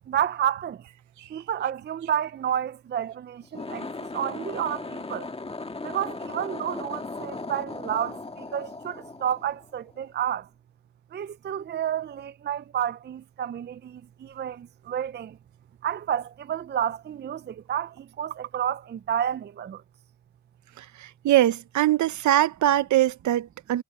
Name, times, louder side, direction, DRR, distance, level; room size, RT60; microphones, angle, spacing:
voice 1, 0.1-0.8 1.3-3.9 4.1-5.3 5.8-10.5 11.1-15.4 15.8-19.8, right 10 dB, 35° right, 0.5 m, -30 dB
sound 1, 3.4-10.0, left 3 dB, 20° left, 1.9 m, -37 dB
voice 2, 20.8-23.8, right 13 dB, 70° right, 0.9 m, -22 dB
cardioid pair, 85°, 30 cm